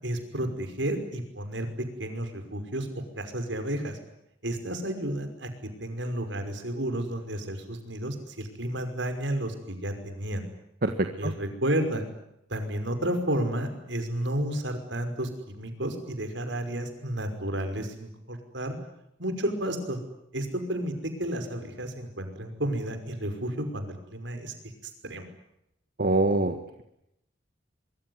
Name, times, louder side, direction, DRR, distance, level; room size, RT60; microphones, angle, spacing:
voice 1, 0.0-1.7 2.0-2.9 3.2-4.0 4.4-5.5 5.8-10.4 11.2-12.0 12.5-18.8 19.2-20.0 20.3-24.5 25.0-25.3, right 1 dB, 75° right, 7 dB, 5.6 m, -31 dB
voice 2, 10.8-11.3 26.0-26.8, right 2 dB, 50° right, 6 dB, 1.7 m, -25 dB
24.0 x 23.5 x 9.8 m, 0.82 s
head